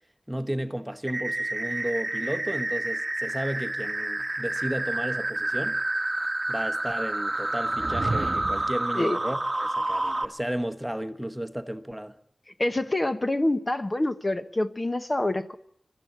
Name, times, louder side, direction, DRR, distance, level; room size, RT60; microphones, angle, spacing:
voice 1, 0.3-5.8 6.5-12.2, right 1 dB, 5° right, 1.1 m, -33 dB
sound 1, 1.1-10.2, right 2 dB, 25° right, 1.1 m, -29 dB
sound 2, 7.6-8.8, right 2 dB, 50° right, 0.8 m, -32 dB
voice 2, 12.6-15.6, left 1 dB, 35° left, 1.0 m, -26 dB
24.0 x 13.0 x 9.4 m
wide cardioid pair, 80°, 0 cm